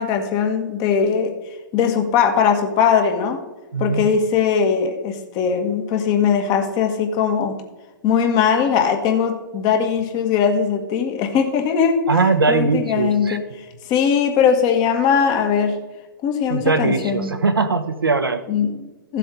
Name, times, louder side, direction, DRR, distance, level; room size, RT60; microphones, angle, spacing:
voice 1, 0.0-1.3 1.7-3.4 3.8-7.6 8.0-13.4 13.9-15.8 16.2-17.3 18.5-19.2, left 7 dB, 35° left, 5 dB, 1.7 m, -20 dB
voice 2, 3.7-4.1 12.1-13.4 16.5-18.4, right 4 dB, 90° right, 9 dB, 1.1 m, -20 dB
15.0 x 7.6 x 3.9 m, 1.1 s
hypercardioid pair, 120°, 12 cm